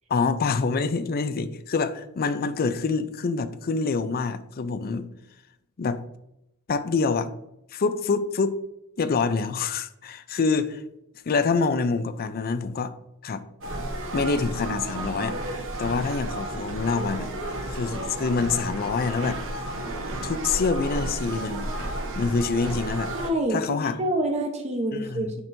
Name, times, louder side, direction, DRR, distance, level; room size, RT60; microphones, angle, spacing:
voice 1, 0.1-5.1 5.8-6.0 6.7-7.3 7.7-8.6 9.0-10.8 11.3-12.9 13.2-13.4 14.1-17.3 17.7-19.4 20.2-21.7 22.1-23.1 23.5-24.0 24.9-25.3, left 4 dB, 45° left, 11 dB, 0.4 m, -26 dB
sound 1, 13.6-23.3, right 1 dB, 60° right, 1.1 m, -32 dB
voice 2, 23.1-25.4, right 1 dB, 30° right, 1 dB, 0.9 m, -27 dB
9.4 x 4.4 x 2.6 m, 0.85 s
head